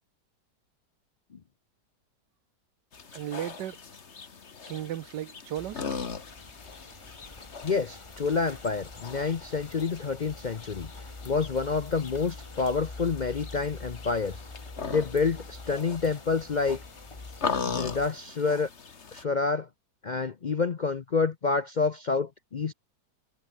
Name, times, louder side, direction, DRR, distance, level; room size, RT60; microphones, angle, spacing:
sound 1, 2.9-19.2, left 5 dB, 40° left, 1.8 m, -40 dB
voice 1, 3.1-3.8 4.7-6.1, right 11 dB, 80° right, 1.5 m, -35 dB
sound 2, 5.6-18.1, left 3 dB, 20° left, 1.4 m, -45 dB
voice 2, 7.6-10.9 11.2-14.4 14.9-16.8 17.6-18.7 19.1-19.7 20.0-22.7, left 4 dB, 65° left, 0.4 m, -28 dB
omnidirectional pair, 1.8 m